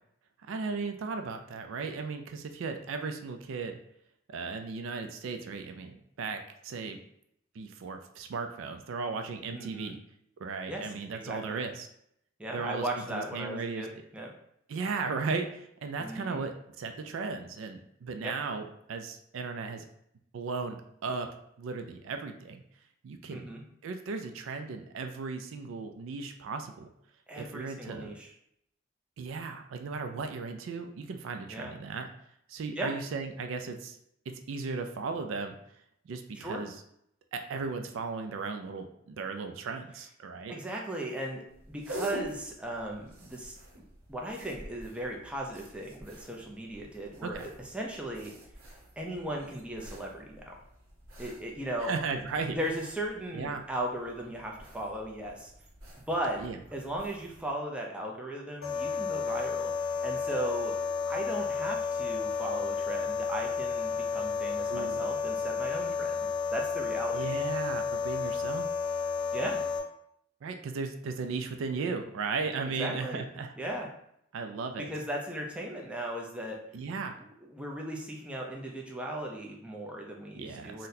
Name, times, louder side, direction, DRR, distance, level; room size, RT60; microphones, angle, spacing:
voice 1, 0.5-3.8 4.3-7.0 7.6-10.0 10.4-11.9 12.5-13.9 14.7-19.8 20.3-21.3 21.6-22.6 23.0-23.5 23.8-26.9 27.4-28.1 29.2-32.1 32.5-34.0 34.3-35.6 36.1-36.7 37.3-40.5 47.2-47.5 51.8-52.6 53.3-53.7 56.4-56.6 64.7-65.1 67.1-68.7 70.4-73.5 74.3-74.9 76.7-77.2 80.3-80.9, right 4 dB, 70° right, 6 dB, 0.3 m, -36 dB
voice 2, 9.5-10.0 10.7-11.6 12.4-14.3 16.0-16.4 18.2-18.3 23.3-23.6 27.3-28.3 31.5-31.7 32.8-32.9 36.4-36.7 40.5-43.6 44.1-48.3 49.0-50.5 51.2-51.9 52.5-55.5 56.1-56.4 56.7-60.8 61.1-66.2 66.5-67.3 69.3-69.6 72.8-73.2 73.6-73.9 74.8-76.6 77.5-80.9, right 1 dB, 5° right, -1 dB, 0.4 m, -37 dB
sound 1, 41.5-57.5, right 1 dB, 90° right, 0.8 m, -48 dB
sound 2, 58.6-69.8, left 5 dB, 85° left, 0.7 m, -32 dB
3.9 x 2.1 x 2.6 m, 0.73 s
head